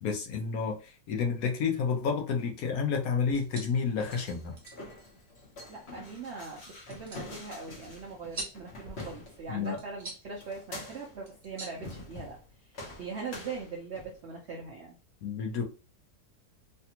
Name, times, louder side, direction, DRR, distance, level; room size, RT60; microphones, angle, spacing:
voice 1, 0.0-4.5 9.5-9.8 15.2-15.6, left 5 dB, 65° left, 2 dB, 1.0 m, -30 dB
sound 1, 3.2-12.7, right 2 dB, 35° right, 1.0 m, -48 dB
sound 2, 3.7-9.7 10.4-11.2 11.8-12.5 12.7-14.2, left 2 dB, 45° left, 1.1 m, -46 dB
voice 2, 5.7-12.4 12.7-14.9, right 4 dB, 70° right, 0 dB, 0.6 m, -41 dB
3.3 x 2.3 x 2.8 m, 0.33 s
omnidirectional pair, 1.8 m